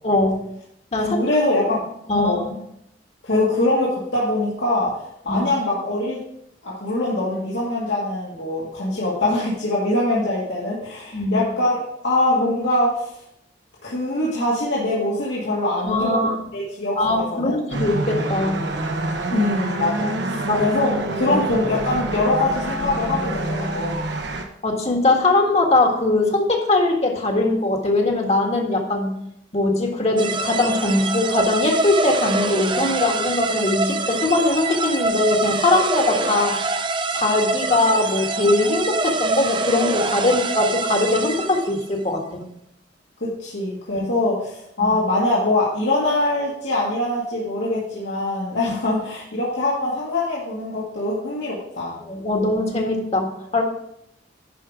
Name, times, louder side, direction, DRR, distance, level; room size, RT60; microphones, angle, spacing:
voice 1, 0.0-0.5 0.9-1.2 2.1-2.5 3.3-3.4 5.3-5.4 11.1-11.4 15.8-16.4 17.0-18.6 20.5-20.6 21.3-21.4 24.6-29.1 29.5-36.6 37.1-42.4 43.9-44.0 44.8-44.9 52.1-53.6, left 2 dB, 35° left, 1 dB, 1.6 m, -21 dB
voice 2, 1.1-1.8 2.1-2.4 3.2-4.9 5.2-6.2 6.6-11.8 12.0-13.1 13.8-17.6 19.3-24.0 43.2-52.0, left 2 dB, 75° left, -7 dB, 2.2 m, -23 dB
sound 1, 17.7-24.5, right 2 dB, 65° right, 1.1 m, -27 dB
sound 2, 30.2-41.8, right 3 dB, 25° right, 0.6 m, -25 dB
11.0 x 5.1 x 4.9 m, 0.75 s
head